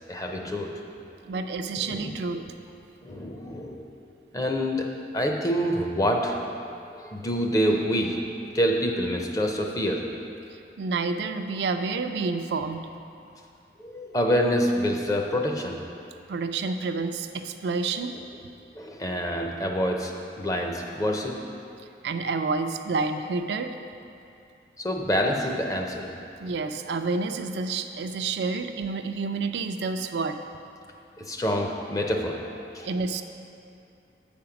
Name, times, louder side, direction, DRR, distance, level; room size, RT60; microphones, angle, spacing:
voice 1, 0.1-0.8 1.9-2.1 3.0-3.9 4.3-6.4 6.9-10.1 13.8-15.8 18.7-21.4 24.8-26.1 31.2-32.9, equal, 20° left, 2 dB, 0.6 m, -27 dB
voice 2, 1.2-2.4 10.8-12.9 16.3-18.1 22.0-23.8 26.4-30.4 32.8-33.2, right 4 dB, 80° right, 7 dB, 0.4 m, -29 dB
7.7 x 5.2 x 5.8 m, 2.6 s
head